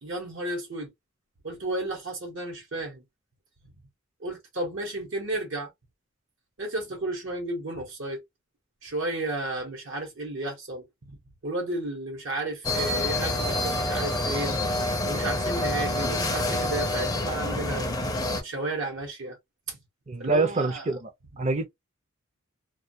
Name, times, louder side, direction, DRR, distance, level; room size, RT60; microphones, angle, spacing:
voice 1, 0.0-0.9 1.4-3.0 4.2-5.7 6.6-8.2 8.8-11.2 11.4-14.6 15.0-17.9 18.2-19.4 19.7-19.8 20.2-20.9, right 2 dB, 65° right, 0.9 m, -33 dB
sound 1, 12.6-18.4, left 1 dB, 20° left, 0.5 m, -27 dB
voice 2, 20.1-21.1 21.4-21.7, right 3 dB, 35° right, 0.6 m, -25 dB
2.3 x 2.2 x 2.6 m
head